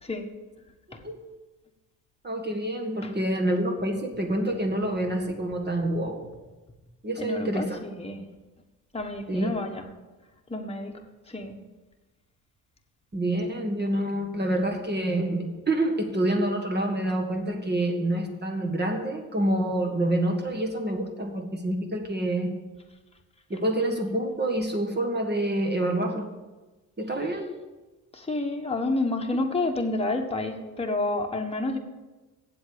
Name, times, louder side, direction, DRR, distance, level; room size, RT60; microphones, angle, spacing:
voice 1, 2.2-6.3 7.0-7.8 9.3-9.5 13.1-22.6 23.5-26.3 27.0-27.5, right 1 dB, 25° right, 2 dB, 1.7 m, -27 dB
voice 2, 7.2-8.2 8.9-9.9 10.5-10.9 11.3-11.5 28.1-31.8, left 2 dB, 15° left, 2 dB, 1.5 m, -29 dB
8.1 x 7.8 x 7.1 m, 1.2 s
hypercardioid pair, 55°, 43 cm